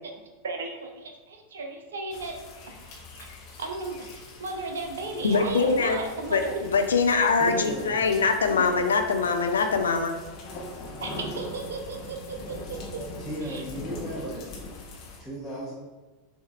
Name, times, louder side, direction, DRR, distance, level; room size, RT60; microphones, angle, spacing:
voice 1, 0.4-2.4 2.9-3.3 3.6-4.1 4.4-6.5 7.1-7.2 11.0-13.0 13.4-13.6, right 3 dB, 70° right, 3 dB, 0.6 m, -35 dB
sound 1, 2.1-15.2, left 2 dB, 45° left, 0.8 m, -42 dB
voice 2, 5.2-6.0 6.3-10.1, left 4 dB, 75° left, 6 dB, 0.4 m, -23 dB
voice 3, 7.4-8.0 13.2-14.4 15.2-15.7, equal, 10° left, -8 dB, 1.1 m, -35 dB
5.7 x 2.8 x 2.4 m, 1.2 s
figure-of-eight pair, 85°, 0 cm